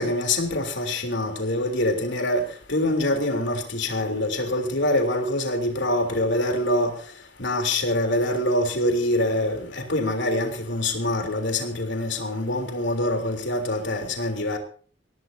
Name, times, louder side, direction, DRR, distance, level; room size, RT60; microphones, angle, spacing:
voice 1, 0.0-7.0 7.4-14.6, left 1 dB, 60° left, 4 dB, 3.6 m, -25 dB
23.5 x 18.0 x 2.8 m, 0.42 s
head